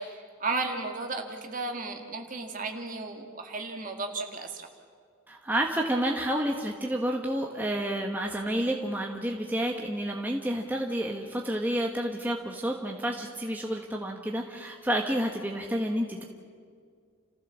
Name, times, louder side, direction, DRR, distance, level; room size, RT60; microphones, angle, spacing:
voice 1, 0.0-4.7, right 3 dB, 40° right, 3 dB, 2.1 m, -34 dB
voice 2, 5.3-16.2, right 1 dB, 10° right, 0 dB, 1.2 m, -30 dB
29.5 x 15.0 x 7.3 m, 2.1 s
head